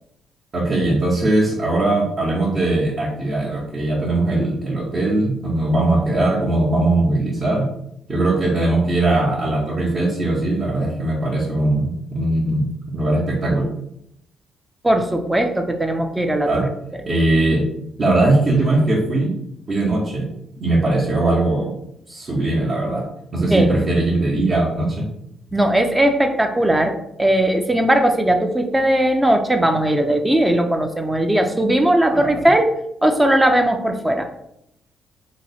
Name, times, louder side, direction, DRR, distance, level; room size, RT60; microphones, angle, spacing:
voice 1, 0.5-7.7 8.1-13.7 16.5-16.7 17.1-17.7 18.0-19.3 19.7-20.3 20.6-21.7 22.1-23.1 23.3-25.0 32.1-32.5, right 2 dB, 40° right, -5 dB, 0.8 m, -20 dB
voice 2, 14.8-16.5 23.5-23.7 25.5-32.7 33.0-34.3, right 1 dB, 10° right, 5 dB, 0.4 m, -18 dB
2.9 x 2.0 x 4.0 m, 0.77 s
cardioid pair, 85°, 0 cm